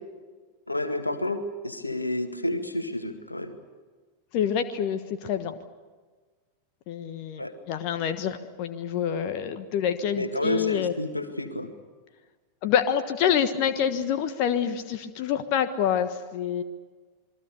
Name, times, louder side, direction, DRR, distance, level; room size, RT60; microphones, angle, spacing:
voice 1, 0.7-3.5 7.4-7.5 10.2-11.7, left 1 dB, 85° left, 7 dB, 2.1 m, -30 dB
voice 2, 4.3-5.5 6.9-10.9 12.6-16.6, left 8 dB, 45° left, 9 dB, 1.4 m, -27 dB
28.0 x 22.5 x 6.7 m, 1.4 s
figure-of-eight pair, 90°, 0 cm